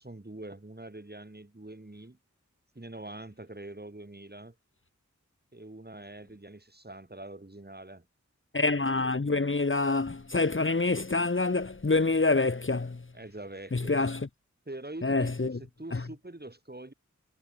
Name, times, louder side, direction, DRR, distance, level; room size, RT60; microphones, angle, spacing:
voice 1, 0.0-2.2 2.7-4.5 5.5-8.0 13.1-13.9 14.7-16.9, right 2 dB, 30° right, 6.6 m, -44 dB
voice 2, 8.5-13.0 13.7-14.3 15.0-15.6 15.9-16.0, left 3 dB, 40° left, 1.2 m, -26 dB
wide cardioid pair, 60°, 31 cm